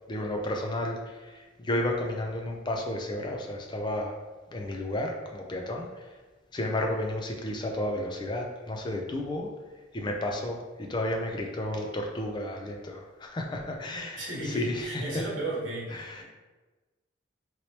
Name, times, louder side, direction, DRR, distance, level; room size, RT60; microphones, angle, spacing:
voice 1, 0.1-4.2 4.5-6.2 6.5-9.5 9.9-15.2 15.9-16.2, left 1 dB, 25° left, 2 dB, 0.4 m, -32 dB
voice 2, 14.2-16.2, right 1 dB, 80° right, -5 dB, 1.1 m, -34 dB
3.1 x 2.9 x 2.8 m, 1.2 s
head